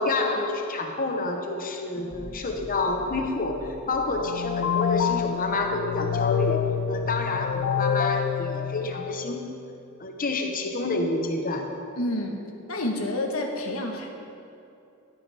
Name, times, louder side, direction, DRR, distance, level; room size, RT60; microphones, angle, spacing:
voice 1, 0.0-6.6 6.9-9.5 10.0-11.7, left 3 dB, 40° left, 3 dB, 1.0 m, -28 dB
sound 1, 1.9-7.4 7.6-8.4, equal, 15° right, 1.2 m, -46 dB
sound 2, 4.2-9.7, left 7 dB, 55° left, 0.3 m, -27 dB
voice 2, 12.0-12.4 12.7-14.1, left 1 dB, 80° left, 2 dB, 1.3 m, -29 dB
13.0 x 9.8 x 3.5 m, 2.6 s
head